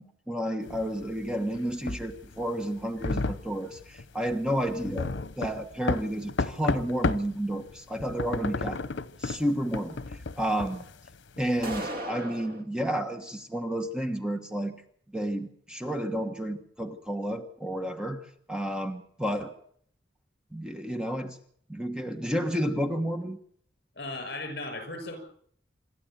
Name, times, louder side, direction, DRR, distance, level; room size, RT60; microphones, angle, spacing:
voice 1, 0.0-5.1 5.4-8.8 9.2-10.8 11.4-14.7 15.1-19.5 20.5-21.4 21.7-23.4, equal, 5° right, 5 dB, 1.3 m, -31 dB
sound 1, 0.7-7.4 7.7-11.8, left 3 dB, 85° left, 0.9 m, -33 dB
sound 2, 11.6-12.6, right 1 dB, 50° right, 2.3 m, -36 dB
voice 2, 24.0-25.2, left 2 dB, 60° left, 8 dB, 6.5 m, -36 dB
26.5 x 12.5 x 9.1 m, 0.65 s
head